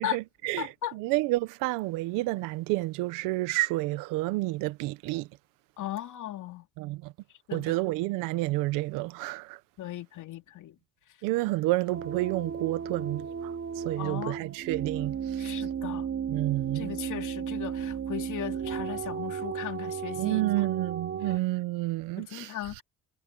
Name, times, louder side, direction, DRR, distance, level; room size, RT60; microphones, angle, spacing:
voice 1, 0.0-5.3 6.8-7.1 7.5-9.6 11.2-15.6 16.3-16.9 20.2-22.8, right 19 dB, 90° right, 1.1 m, -30 dB
voice 2, 0.6-0.9 5.8-6.7 7.5-7.8 9.8-10.8 11.1-11.2 14.0-14.3 15.4-16.1 16.7-20.7 22.2-22.8, left 12 dB, 70° left, 3.0 m, -37 dB
sound 1, 11.9-21.4, right 7 dB, 40° right, 1.3 m, -34 dB
supercardioid pair, 70°, 31 cm